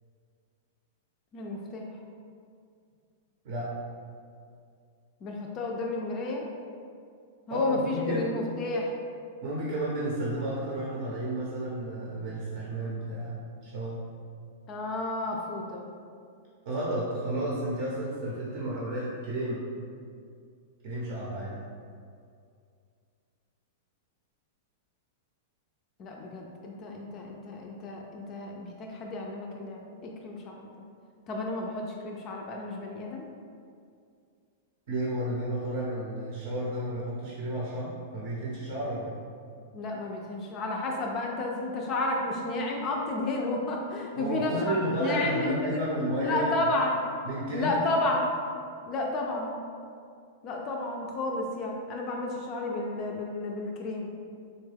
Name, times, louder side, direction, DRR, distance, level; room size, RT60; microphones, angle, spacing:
voice 1, 1.3-1.9 5.2-6.5 7.5-8.9 14.7-15.9 26.0-30.7 31.3-33.3 39.7-45.8 46.2-47.0 47.5-48.3 48.9-49.6 50.4-54.1, left 2 dB, 30° left, 0 dB, 0.3 m, -31 dB
voice 2, 7.5-8.3 9.4-13.3 13.6-14.0 16.6-19.6 20.8-21.5 34.9-39.1 44.2-46.5 47.2-47.7, right 1 dB, 50° right, -5 dB, 0.7 m, -32 dB
3.8 x 2.2 x 3.3 m, 2.3 s
supercardioid pair, 155°, 0 cm